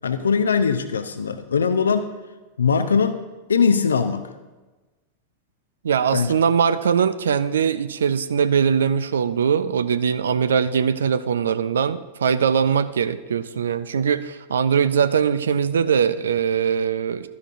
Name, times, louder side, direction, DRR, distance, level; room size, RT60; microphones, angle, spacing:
voice 1, 0.0-2.1 2.6-3.2 3.5-4.3 6.1-6.3, left 6 dB, 70° left, 9 dB, 0.6 m, -21 dB
voice 2, 5.8-17.3, right 7 dB, 65° right, 14 dB, 0.3 m, -21 dB
12.5 x 11.0 x 2.5 m, 1.2 s
figure-of-eight pair, 90°, 0 cm